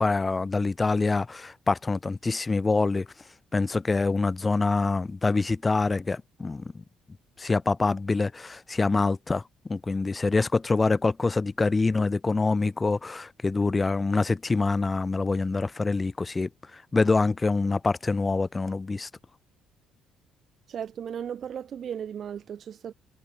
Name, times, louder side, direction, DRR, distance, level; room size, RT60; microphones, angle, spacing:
voice 1, 0.0-3.1 3.5-6.8 7.4-9.4 9.7-19.1, left 3 dB, 25° left, 1.0 m, -25 dB
voice 2, 20.7-22.9, right 8 dB, 55° right, 6.3 m, -36 dB
supercardioid pair, 80°, 0 cm